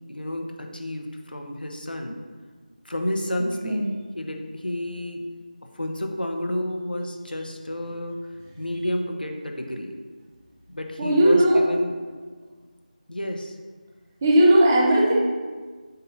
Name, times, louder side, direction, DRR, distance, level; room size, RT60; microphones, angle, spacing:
voice 1, 0.1-2.2 2.8-3.8 4.2-5.3 5.7-8.3 8.6-9.9 10.7-12.0 13.1-13.6, left 1 dB, 85° left, 3 dB, 1.1 m, -30 dB
voice 2, 3.6-3.9 11.0-11.6 14.2-15.2, right 1 dB, 15° right, -3 dB, 0.6 m, -17 dB
8.0 x 5.4 x 2.8 m, 1.5 s
figure-of-eight pair, 165°, 5 cm